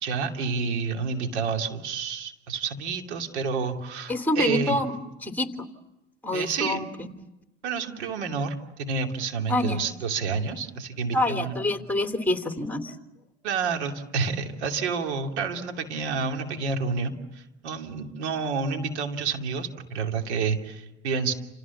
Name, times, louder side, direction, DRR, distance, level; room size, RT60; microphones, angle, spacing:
voice 1, 0.0-4.8 6.3-6.8 7.6-11.5 13.4-21.3, right 5 dB, 90° right, 4 dB, 2.8 m, -29 dB
voice 2, 4.1-4.9 5.2-5.5 6.2-7.1 9.5-9.8 11.1-12.9, left 2 dB, 5° left, 5 dB, 3.2 m, -26 dB
29.0 x 28.0 x 7.2 m, 0.98 s
hypercardioid pair, 80°, 33 cm